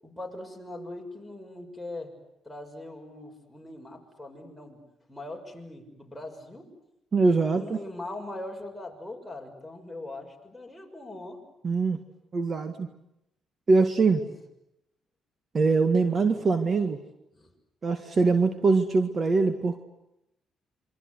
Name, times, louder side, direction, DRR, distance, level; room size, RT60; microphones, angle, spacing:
voice 1, 0.0-2.2 2.4-4.8 5.1-6.7 7.2-11.4 14.1-14.3 16.0-16.3 17.3-17.5, left 2 dB, 5° left, 1 dB, 6.5 m, -41 dB
voice 2, 7.1-7.8 11.6-12.0 12.3-12.9 13.7-14.2 15.5-17.0 17.8-19.8, right 4 dB, 40° right, 8 dB, 1.9 m, -23 dB
27.5 x 25.0 x 8.1 m, 0.83 s
cardioid pair, 90°, 0 cm